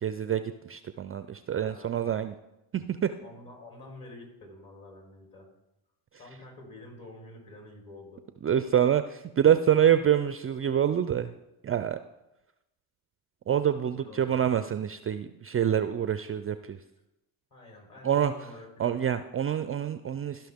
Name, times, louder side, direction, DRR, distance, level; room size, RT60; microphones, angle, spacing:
voice 1, 0.0-2.3 2.7-3.1 8.4-11.3 11.6-12.0 13.5-16.8 18.0-18.3 18.8-20.5, right 9 dB, 30° right, 11 dB, 0.4 m, -26 dB
voice 2, 1.5-2.1 3.2-5.5 6.2-8.2 13.9-14.6 17.5-19.0, left 2 dB, 45° left, 0 dB, 4.1 m, -48 dB
14.5 x 5.7 x 3.6 m, 0.91 s
supercardioid pair, 65°, 47 cm